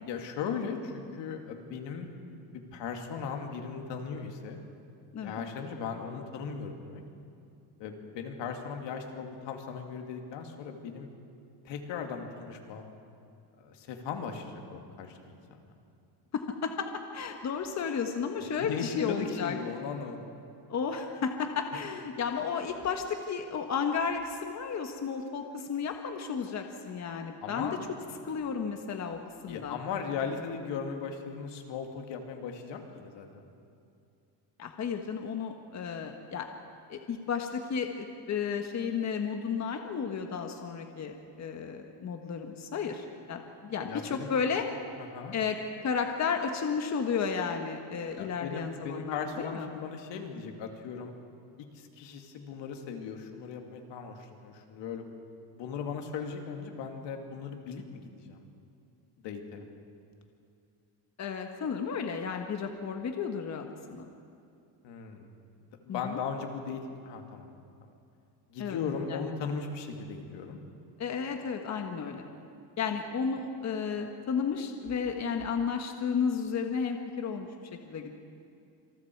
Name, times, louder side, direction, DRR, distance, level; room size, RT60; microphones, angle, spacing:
voice 1, 0.0-2.1 2.5-4.6 5.2-7.0 7.8-11.1 11.6-12.9 13.6-15.4 18.4-20.4 27.4-27.8 29.5-33.5 43.8-44.3 45.0-45.4 48.2-51.1 51.6-55.0 55.5-58.4 59.2-59.6 64.8-65.3 65.8-67.5 67.8-67.9 68.5-70.6, left 6 dB, 80° left, 3 dB, 2.7 m, -37 dB
voice 2, 16.3-16.9 17.1-19.6 20.7-27.8 28.2-29.8 34.6-36.5 36.9-44.7 45.3-49.7 61.2-64.1 65.9-66.2 68.6-68.8 69.1-69.2 71.0-72.3 72.8-77.5 77.8-78.1, left 6 dB, 40° left, 4 dB, 1.5 m, -33 dB
27.0 x 27.0 x 4.8 m, 2.5 s
cardioid pair, 145°, 42 cm